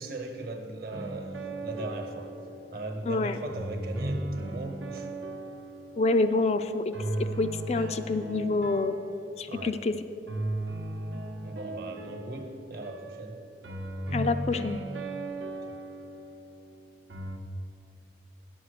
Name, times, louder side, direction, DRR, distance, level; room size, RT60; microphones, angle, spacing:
voice 1, 0.0-2.3 2.7-5.1 8.3-8.7 9.5-9.8 11.4-13.4 15.7-15.8, right 2 dB, 55° right, 5 dB, 1.1 m, -38 dB
sound 1, 0.9-2.9 3.5-6.4 6.9-9.6 10.3-16.6 17.1-17.4, right 1 dB, 85° right, 0.9 m, -37 dB
voice 2, 3.1-3.4 6.0-6.9 7.2-9.0 9.4-9.9 14.1-14.8, left 3 dB, 35° left, 9 dB, 0.3 m, -27 dB
9.9 x 7.1 x 6.6 m, 2.8 s
head